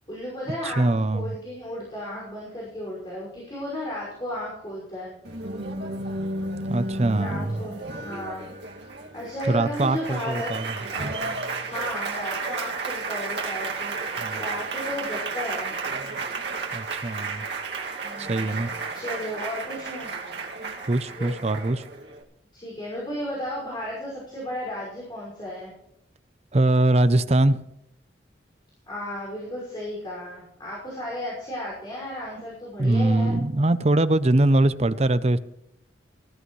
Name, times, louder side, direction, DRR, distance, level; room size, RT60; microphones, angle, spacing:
voice 1, 0.1-0.8 1.1-5.4 7.2-8.5 9.1-10.5 10.9-15.8 18.0-20.1 21.1-21.7 22.5-25.7 28.9-33.4, left 1 dB, 25° left, 5.8 m, -34 dB
voice 2, 0.6-1.4 6.7-7.6 9.5-10.7 14.2-14.4 16.7-17.5 18.2-18.7 20.9-21.8 26.5-27.6 32.8-35.4, right 2 dB, 35° right, 0.6 m, -22 dB
Applause, 5.2-22.2, right 3 dB, 70° right, 2.2 m, -33 dB
19.5 x 14.0 x 3.2 m
head